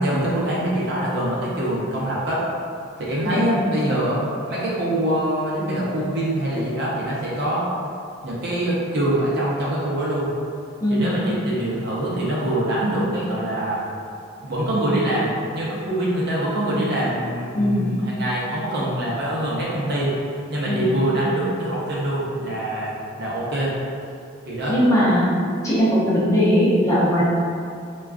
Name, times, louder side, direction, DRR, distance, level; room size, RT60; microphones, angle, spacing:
voice 1, 0.0-2.4 3.0-4.2 4.5-7.7 8.2-10.3 10.9-13.8 14.4-20.1 20.5-23.7 24.5-24.7, right 1 dB, 50° right, -6 dB, 0.6 m, -24 dB
voice 2, 17.5-17.9 20.6-20.9 24.7-25.3 25.6-27.2, equal, 15° left, -9 dB, 0.5 m, -19 dB
3.5 x 2.3 x 2.4 m, 2.4 s
head